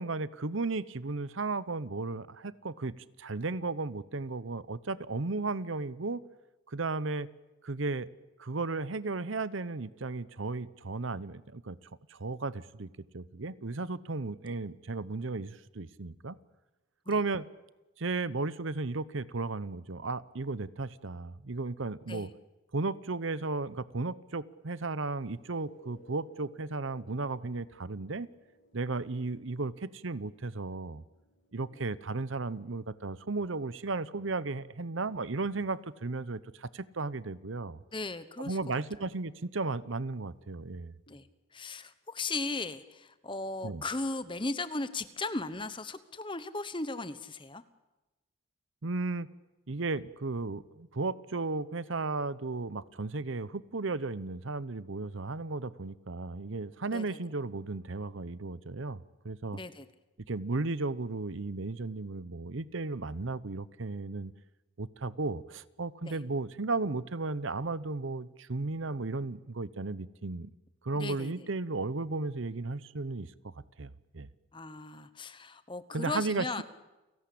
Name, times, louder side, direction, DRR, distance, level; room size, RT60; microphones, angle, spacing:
voice 1, 0.0-6.2 6.7-7.3 7.6-8.1 8.4-11.8 12.1-16.4 17.1-17.5 18.0-22.3 22.7-28.3 28.7-31.0 31.5-37.8 38.4-40.9 43.6-43.8 48.8-49.3 49.7-59.6 60.3-64.3 64.8-70.5 70.8-73.5 73.8-74.3 75.9-76.5, right 3 dB, 70° right, 17 dB, 0.8 m, -35 dB
sound 1, 25.2-36.8 41.1-41.2, right 1 dB, 55° left, 5.1 m, -61 dB
voice 2, 37.9-38.8 41.1-41.2 41.5-47.6 56.9-57.2 59.5-59.9 66.0-66.2 71.0-71.5 74.5-76.6, left 3 dB, 25° left, 13 dB, 1.1 m, -37 dB
30.0 x 18.0 x 8.6 m, 1.1 s
head